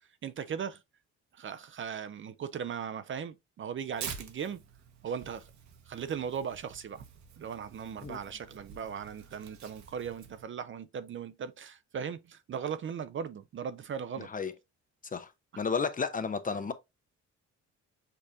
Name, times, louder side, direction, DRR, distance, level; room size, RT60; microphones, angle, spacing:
voice 1, 0.2-0.8 1.3-4.6 5.0-5.5 5.9-7.0 7.4-14.3 15.5-15.6, right 7 dB, 40° right, 0.5 m, -38 dB
Tearing, 3.9-10.4, right 7 dB, 65° right, 1.0 m, -47 dB
voice 2, 15.6-16.7, left 5 dB, 30° left, 0.6 m, -32 dB
6.6 x 2.5 x 2.7 m
cardioid pair, 90°, 30 cm